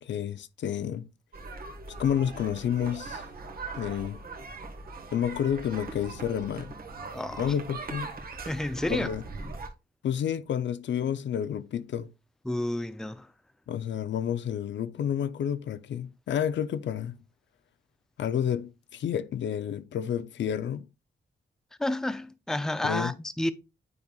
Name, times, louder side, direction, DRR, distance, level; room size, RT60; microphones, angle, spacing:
voice 1, 0.0-1.1 2.0-3.2 3.8-4.2 5.1-6.7 7.4-8.1 8.9-9.2 10.0-12.1 13.7-17.2 18.2-20.9 22.8-23.1, left 9 dB, 85° left, 0.5 m, -30 dB
sound 1, 1.3-9.7, right 3 dB, 55° right, 1.4 m, -40 dB
voice 2, 7.1-7.5 8.5-9.1 12.4-13.3 21.8-23.5, left 1 dB, 5° left, 0.4 m, -30 dB
9.6 x 5.2 x 2.3 m
wide cardioid pair, 135°, 18 cm